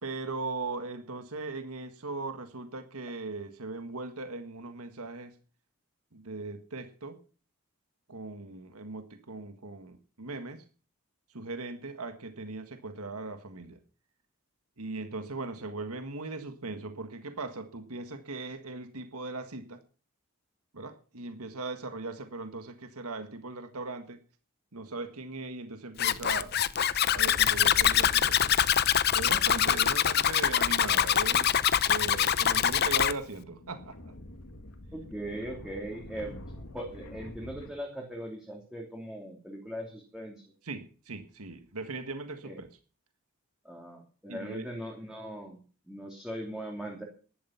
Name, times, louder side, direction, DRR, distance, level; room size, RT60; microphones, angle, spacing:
voice 1, 0.0-5.4 6.1-7.2 8.1-10.6 11.3-13.8 14.8-19.8 20.7-24.2 24.7-26.6 27.1-28.6 29.1-31.6 31.9-34.1 40.6-42.8 44.3-44.7, right 3 dB, 85° right, 8 dB, 1.7 m, -39 dB
Zipper (clothing), 26.0-33.1, left 9 dB, 45° left, 0.6 m, -24 dB
sound 1, 33.4-37.7, left 1 dB, 70° left, 2.2 m, -46 dB
voice 2, 34.9-36.4 36.7-40.4 42.4-42.6 43.6-45.6 45.9-47.0, right 1 dB, 5° right, -1 dB, 2.8 m, -39 dB
13.5 x 11.5 x 5.8 m, 0.38 s
head